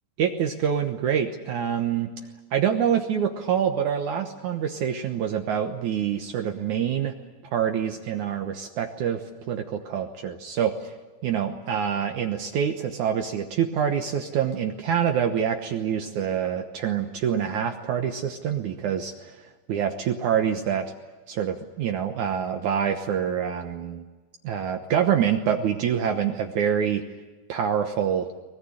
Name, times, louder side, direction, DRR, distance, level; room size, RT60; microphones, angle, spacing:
voice 1, 0.2-2.2 2.5-7.1 7.5-10.9 11.2-19.4 19.7-20.9 21.3-24.0 24.4-27.0 27.5-28.3, right 8 dB, 85° right, 5 dB, 1.7 m, -26 dB
23.5 x 20.0 x 9.9 m, 1.2 s
omnidirectional pair, 5.2 m